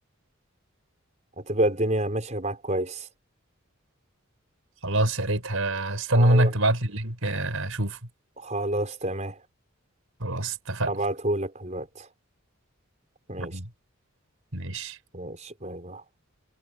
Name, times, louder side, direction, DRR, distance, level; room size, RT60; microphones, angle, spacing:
voice 1, 1.4-3.1 6.1-6.5 8.4-9.4 10.9-12.1 13.3-13.6 15.1-16.0, right 1 dB, 35° right, 5.1 m, -29 dB
voice 2, 4.8-8.0 10.2-10.9 13.4-13.7 14.5-15.0, right 1 dB, 75° right, 4.7 m, -25 dB
head